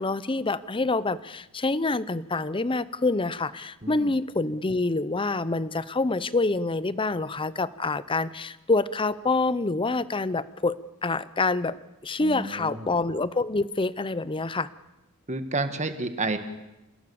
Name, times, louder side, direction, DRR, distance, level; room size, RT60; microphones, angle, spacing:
voice 1, 0.0-11.8 12.0-14.7, left 3 dB, 25° left, 17 dB, 0.7 m, -26 dB
voice 2, 3.8-4.1 12.2-12.9 15.3-16.4, right 2 dB, 30° right, 8 dB, 1.7 m, -30 dB
28.5 x 17.0 x 7.0 m, 0.97 s
head